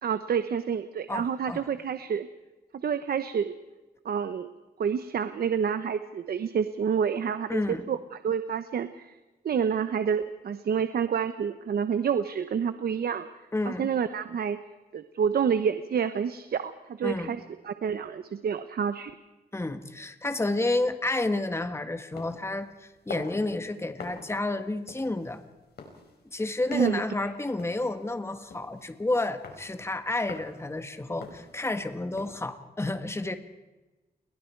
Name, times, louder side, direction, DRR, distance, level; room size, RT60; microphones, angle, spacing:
voice 1, 0.0-2.3 2.7-3.5 4.0-4.5 4.8-9.1 9.4-13.3 13.6-14.6 14.9-19.1 26.7-27.3, right 7 dB, 70° right, 10 dB, 1.1 m, -28 dB
voice 2, 1.1-1.6 7.5-7.9 13.5-13.9 17.0-17.4 19.5-25.4 26.3-33.4, left 2 dB, 15° left, 8 dB, 1.6 m, -30 dB
sound 1, 22.2-32.4, left 4 dB, 80° left, 5.3 m, -47 dB
29.0 x 22.0 x 4.7 m, 1.1 s
cardioid pair, 95°, 16 cm